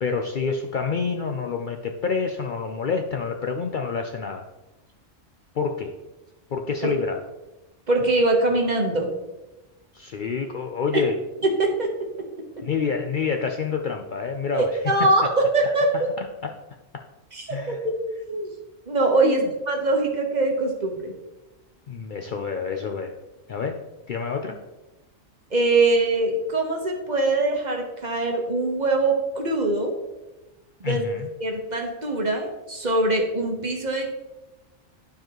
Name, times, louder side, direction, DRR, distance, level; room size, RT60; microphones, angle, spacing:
voice 1, 0.0-4.5 5.5-5.9 6.5-7.2 9.9-11.2 12.6-14.7 15.2-15.3 16.4-16.5 17.5-17.8 19.2-19.5 21.9-23.2 23.5-23.8 24.1-24.5 30.8-31.3, left 5 dB, 55° left, 4 dB, 0.6 m, -27 dB
voice 2, 7.9-9.1 11.6-11.9 14.5-16.1 17.3-18.0 18.2-18.5 18.9-21.1 25.5-29.9 30.8-31.1 31.4-34.1, right 2 dB, 40° right, 1 dB, 1.1 m, -23 dB
11.5 x 4.7 x 3.0 m, 1.0 s
omnidirectional pair, 1.2 m